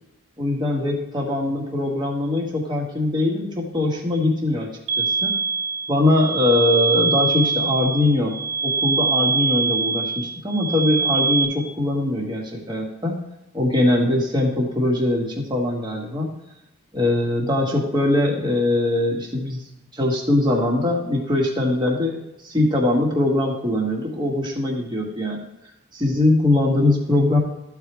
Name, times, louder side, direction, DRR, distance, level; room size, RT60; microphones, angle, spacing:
voice 1, 0.4-5.4 5.9-13.2 13.5-16.4 16.9-19.6 19.9-25.5 25.9-27.4, left 2 dB, 20° right, -2 dB, 1.8 m, -22 dB
sound 1, 4.9-11.5, right 5 dB, 65° right, 1.1 m, -23 dB
14.0 x 4.7 x 3.4 m, 0.91 s
head